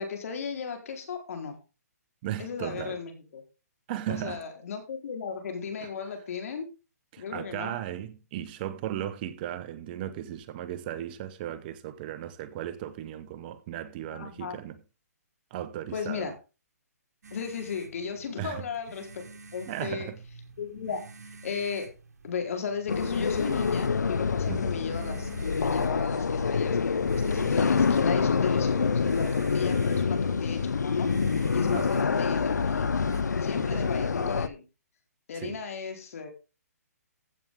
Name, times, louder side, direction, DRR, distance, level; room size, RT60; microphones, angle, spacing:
voice 1, 0.0-1.6 2.4-3.4 4.1-6.7 7.2-7.8 14.1-14.6 15.9-16.3 17.3-19.2 19.5-20.1 20.6-21.0 21.4-21.9 22.2-25.3 25.6-31.1 31.5-32.9 33.4-34.6 35.3-36.3, left 6 dB, 55° left, 4.2 m, -35 dB
voice 2, 2.2-3.0 3.9-4.4 5.8-5.9 7.1-14.8 15.5-16.3 18.4-18.7 19.7-20.2 24.5-24.8 31.7-32.0 33.5-33.9 35.3-35.6, right 11 dB, 35° right, 1.0 m, -36 dB
sound 1, 17.2-33.2, right 4 dB, 75° right, 1.9 m, -47 dB
sound 2, 22.9-34.5, left 5 dB, 90° left, 0.8 m, -26 dB
15.0 x 7.2 x 3.7 m
hypercardioid pair, 145°, 9 cm